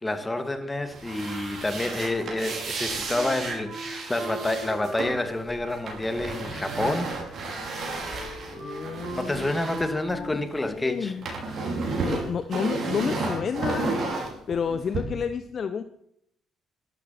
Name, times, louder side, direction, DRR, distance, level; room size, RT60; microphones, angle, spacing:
voice 1, 0.0-7.4 9.1-11.2, left 2 dB, 20° left, 9 dB, 2.4 m, -29 dB
sound 1, 0.9-10.7 10.9-15.0, right 3 dB, 60° right, 5.1 m, -33 dB
Wind instrument woodwind instrument, 3.1-10.6, right 2 dB, 85° right, 4.6 m, -40 dB
voice 2, 8.5-9.5 10.3-11.3 12.0-14.0 14.5-15.8, left 6 dB, 50° left, 11 dB, 0.9 m, -30 dB
12.5 x 12.0 x 6.0 m, 0.73 s
supercardioid pair, 60°, 0 cm